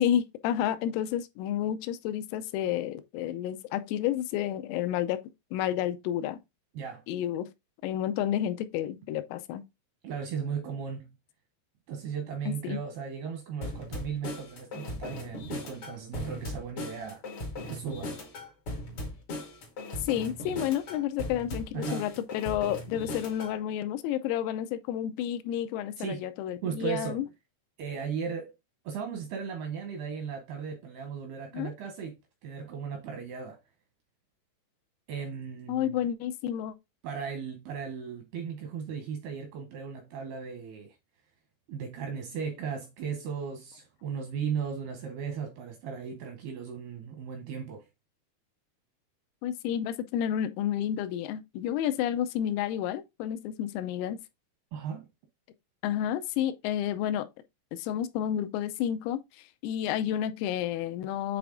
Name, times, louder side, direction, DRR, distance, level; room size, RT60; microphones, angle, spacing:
voice 1, 0.0-5.2 5.5-6.4 7.1-7.5 7.8-9.6 12.5-12.8 20.0-27.3 31.5-31.7 35.7-36.7 49.4-54.2 55.8-57.3 57.7-61.4, left 10 dB, 90° left, 3.4 m, -30 dB
voice 2, 10.0-11.1 11.9-17.2 17.7-18.1 21.7-22.1 26.0-26.2 26.6-27.2 27.8-28.5 28.9-33.6 35.1-36.0 37.0-41.0 41.7-47.9 54.7-55.1, right 6 dB, 85° right, 2.2 m, -36 dB
sound 1, 13.6-23.5, left 1 dB, 70° left, 1.3 m, -38 dB
8.6 x 3.5 x 3.7 m
omnidirectional pair, 5.9 m